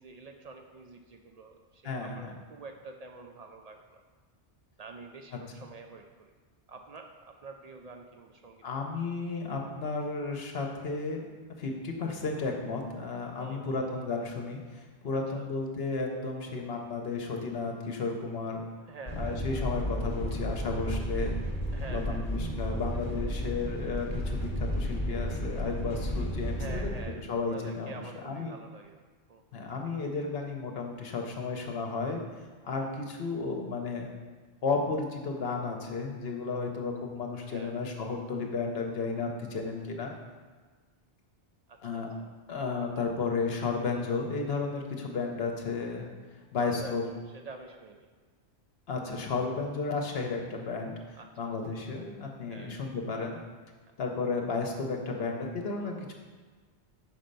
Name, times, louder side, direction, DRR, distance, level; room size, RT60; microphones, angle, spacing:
voice 1, 0.0-4.0 4.8-6.3 6.7-8.6 13.4-13.9 15.1-15.5 18.9-19.4 21.7-22.3 26.6-29.0 29.3-29.4 37.5-37.8 41.7-42.3 46.6-48.1 51.1-51.3 52.5-52.8 55.8-56.1, right 4 dB, 60° right, 4 dB, 0.4 m, -47 dB
voice 2, 1.8-2.3 8.6-11.2 11.6-18.6 19.2-21.4 21.9-28.5 29.5-32.2 32.6-34.1 34.6-40.1 41.8-42.1 42.5-46.1 46.5-47.0 48.9-50.9 51.4-53.4 54.0-56.1, left 4 dB, 65° left, 2 dB, 1.0 m, -33 dB
sound 1, 19.1-27.0, equal, 45° left, 1.2 m, -33 dB
5.9 x 4.3 x 5.2 m, 1.4 s
omnidirectional pair, 1.2 m